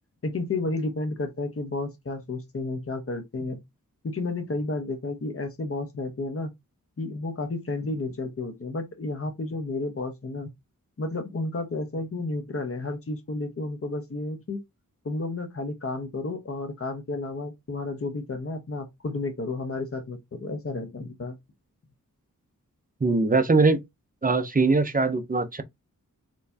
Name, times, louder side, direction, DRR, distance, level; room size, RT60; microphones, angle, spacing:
voice 1, 0.2-3.6 4.0-6.5 7.0-10.5 11.0-14.6 15.0-21.4, left 2 dB, 45° left, 1.1 m, -32 dB
voice 2, 23.0-23.8 24.2-25.6, right 3 dB, 25° right, 0.7 m, -21 dB
4.4 x 3.1 x 2.7 m
wide cardioid pair, 105°, 33 cm